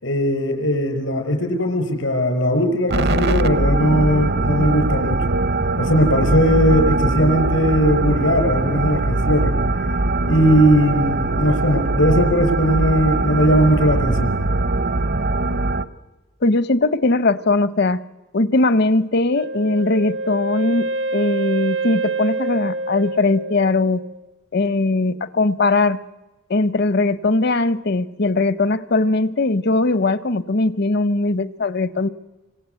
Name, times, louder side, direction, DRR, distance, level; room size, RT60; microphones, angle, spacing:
voice 1, 0.0-5.2 5.8-9.6 10.3-14.3, equal, 90° left, 5 dB, 5.9 m, -18 dB
sound 1, 2.9-15.8, right 2 dB, 60° right, 0.8 m, -21 dB
voice 2, 16.4-18.0 18.3-24.0 24.5-26.0 26.5-32.1, left 2 dB, 60° left, 16 dB, 0.8 m, -19 dB
Wind instrument woodwind instrument, 19.3-24.2, right 3 dB, 90° right, 1.4 m, -26 dB
27.0 x 25.0 x 8.2 m, 1.1 s
head